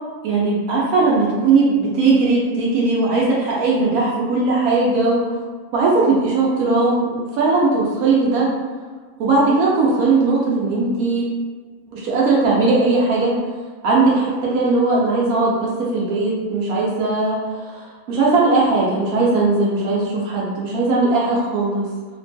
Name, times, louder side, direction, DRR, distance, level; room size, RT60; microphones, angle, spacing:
voice 1, 0.2-5.3 5.7-8.5 9.2-11.3 11.9-13.4 13.8-17.4 17.7-17.8 18.1-21.8, right 3 dB, 85° right, -5 dB, 1.0 m, -18 dB
2.9 x 2.2 x 2.6 m, 1.4 s
omnidirectional pair, 1.5 m